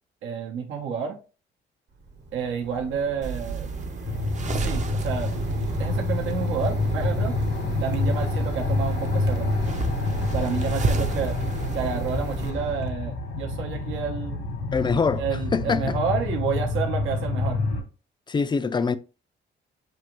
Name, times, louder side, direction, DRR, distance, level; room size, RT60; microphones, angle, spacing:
voice 1, 0.2-1.2 2.3-3.7 4.5-5.3 5.8-7.4 7.8-9.5 10.3-11.4 11.7-14.4 15.2-17.6, right 6 dB, 80° right, 0.8 m, -30 dB
Mechanisms, 1.9-12.9, right 2 dB, 60° right, 1.1 m, -37 dB
sound 1, 3.2-12.5, right 4 dB, 35° right, 0.6 m, -33 dB
sound 2, 4.1-17.8, left 2 dB, 85° left, 1.3 m, -27 dB
voice 2, 14.7-16.0 18.3-19.0, left 5 dB, 25° left, 0.3 m, -24 dB
6.0 x 2.6 x 2.9 m
cardioid pair, 90°, 20 cm